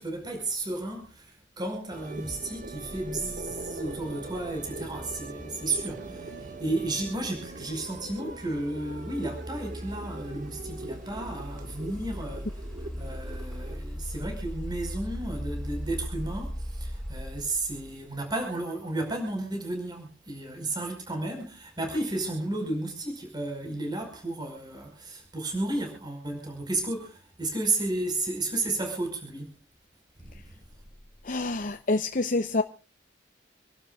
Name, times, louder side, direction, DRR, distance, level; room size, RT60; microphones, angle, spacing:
voice 1, 0.0-29.6 30.2-30.5, right 2 dB, 25° right, 5.1 m, -33 dB
sound 1, 1.9-13.8, right 2 dB, 45° right, 1.8 m, -41 dB
sound 2, 4.0-18.2, equal, 5° left, 6.7 m, -39 dB
voice 2, 31.2-32.6, left 2 dB, 45° left, 0.8 m, -27 dB
28.0 x 12.0 x 2.4 m
head